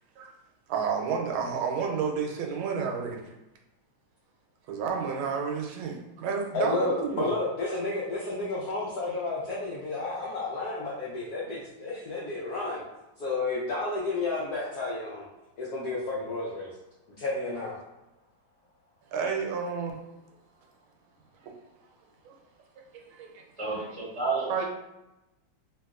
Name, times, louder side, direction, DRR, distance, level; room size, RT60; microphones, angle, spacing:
voice 1, 0.7-3.3 4.7-7.3 19.1-20.0 21.4-21.5 22.2-22.3 22.9-23.4 23.7-23.9 24.5-24.7, right 6 dB, 85° right, 2 dB, 1.4 m, -31 dB
voice 2, 6.5-12.8 13.2-15.3 15.6-16.7 17.2-17.7, left 2 dB, 80° left, -6 dB, 0.8 m, -31 dB
voice 3, 23.6-24.7, right 3 dB, 25° right, -8 dB, 0.7 m, -31 dB
3.0 x 2.8 x 2.3 m, 0.95 s
omnidirectional pair, 2.2 m